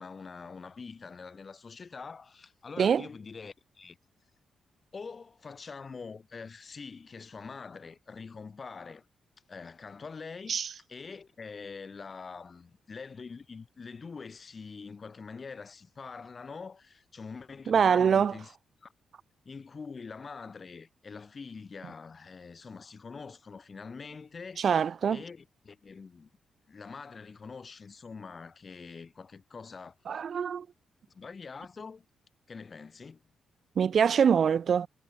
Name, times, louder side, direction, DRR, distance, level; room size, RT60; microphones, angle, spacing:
voice 1, 0.0-4.0 4.9-9.0 9.5-10.6 10.9-18.6 18.8-18.9 19.4-24.7 25.1-26.3 26.7-30.2 31.1-32.1 32.5-33.2, left 5 dB, 45° left, 5.9 m, -44 dB
voice 2, 17.7-18.3 24.6-25.2 30.1-30.7 33.8-34.9, right 7 dB, 60° right, 0.5 m, -24 dB
cardioid pair, 70°, 0 cm